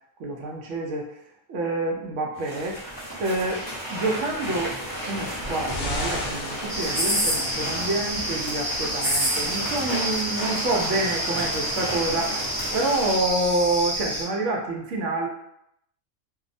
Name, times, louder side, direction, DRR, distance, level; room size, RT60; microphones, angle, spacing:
voice 1, 0.2-1.1 1.5-2.8 3.2-4.7 5.0-12.3 12.7-15.3, right 2 dB, 70° right, 0 dB, 0.9 m, -27 dB
sound 1, 2.3-13.1, equal, 20° left, 0.6 m, -33 dB
sound 2, 4.4-7.6 8.5-8.6, left 1 dB, 60° left, 0.9 m, -35 dB
sound 3, 6.7-14.2, equal, 30° right, 0.9 m, -28 dB
2.5 x 2.0 x 2.5 m, 0.77 s
omnidirectional pair, 1.4 m